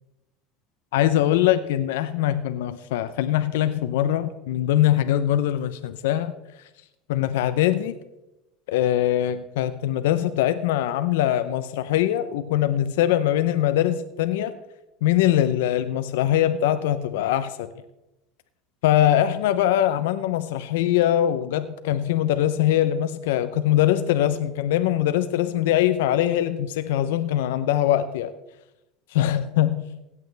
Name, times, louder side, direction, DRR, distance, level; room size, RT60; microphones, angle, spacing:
voice 1, 0.9-6.3 7.1-8.0 8.7-14.6 15.0-17.7 18.8-28.3 29.1-29.8, left 12 dB, 90° left, 11 dB, 0.6 m, -22 dB
16.5 x 8.7 x 3.3 m, 0.94 s
supercardioid pair, 130°, 0 cm